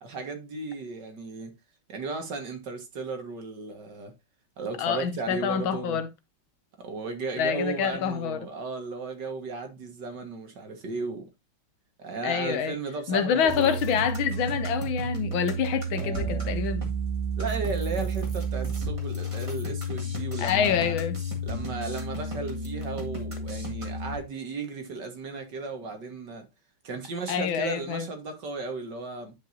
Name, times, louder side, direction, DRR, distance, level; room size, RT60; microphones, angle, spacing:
voice 1, 0.0-1.5 1.9-4.1 4.6-6.0 6.8-11.3 12.0-13.8 15.9-16.6 17.4-21.0 21.4-26.5 26.8-29.3, right 4 dB, 55° right, 2.0 m, -35 dB
voice 2, 4.8-6.1 7.4-8.4 12.2-12.8 13.1-16.9 20.4-21.2 27.3-28.1, left 8 dB, 75° left, 1.4 m, -27 dB
sound 1, 13.5-24.1, right 2 dB, 15° right, 1.8 m, -31 dB
10.5 x 5.3 x 2.7 m
omnidirectional pair, 2.4 m